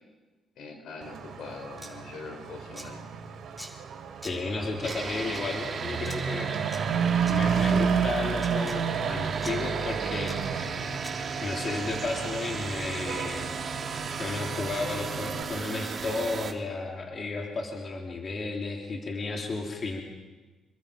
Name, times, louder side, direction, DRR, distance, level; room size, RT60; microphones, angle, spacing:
voice 1, 0.6-3.0, left 4 dB, 75° left, 5 dB, 4.5 m, -42 dB
Truck / Accelerating revving vroom, 1.0-15.4, right 7 dB, 75° right, 3.3 m, -32 dB
sound 1, 1.8-1.9 2.7-2.9 3.6-3.7 4.2-4.3 4.9-5.0 5.3-5.4 6.1-6.2 6.7-6.8 7.3-7.4 8.4-8.8 9.4-9.5 10.3-10.4 11.0-11.1, equal, 5° left, 3.9 m, -42 dB
voice 2, 4.2-6.5 7.3-10.8 11.4-13.6 14.2-20.0, left 3 dB, 45° left, 0 dB, 3.3 m, -33 dB
sound 2, 4.8-16.5, right 6 dB, 50° right, 2.5 m, -36 dB
27.5 x 22.5 x 5.2 m, 1.2 s
cardioid pair, 90°, 0 cm